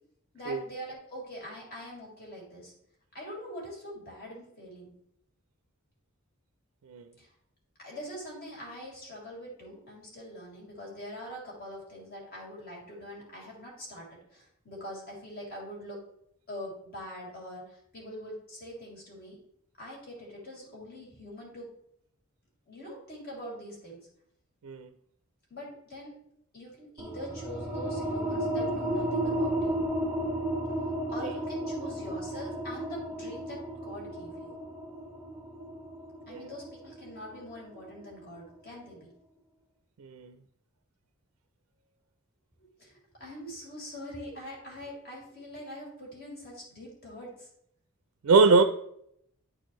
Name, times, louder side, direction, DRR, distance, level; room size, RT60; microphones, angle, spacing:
voice 1, 0.3-2.7 3.1-4.9 7.2-7.3 7.8-16.0 16.5-19.4 19.8-21.7 22.7-24.0 25.5-26.1 26.5-29.8 31.1-34.5 36.3-39.1 42.6-47.5, equal, 45° left, -3 dB, 2.6 m, -43 dB
sound 1, 27.0-38.2, right 1 dB, 5° right, 1.2 m, -33 dB
voice 2, 40.0-40.4 48.2-48.6, right 4 dB, 80° right, 8 dB, 0.4 m, -22 dB
11.0 x 4.5 x 3.0 m, 0.74 s
head